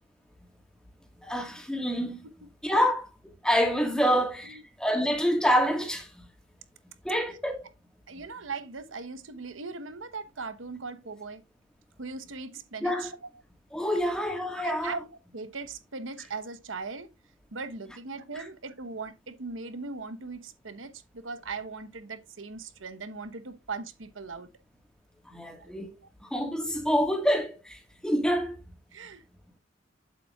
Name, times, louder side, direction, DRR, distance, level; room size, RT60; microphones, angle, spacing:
voice 1, 1.2-2.2 2.6-6.1 7.0-7.6 12.8-13.1 13.7-15.0 18.4-18.5 25.3-25.9 26.2-28.6, equal, 5° left, 1.6 m, -27 dB
voice 2, 4.0-4.6 8.1-11.4 12.0-13.3 14.5-15.1 15.3-17.1 17.5-24.5 25.6-25.7 26.0-26.1 28.9-29.2, right 4 dB, 80° right, 1.0 m, -39 dB
8.2 x 7.7 x 2.4 m
head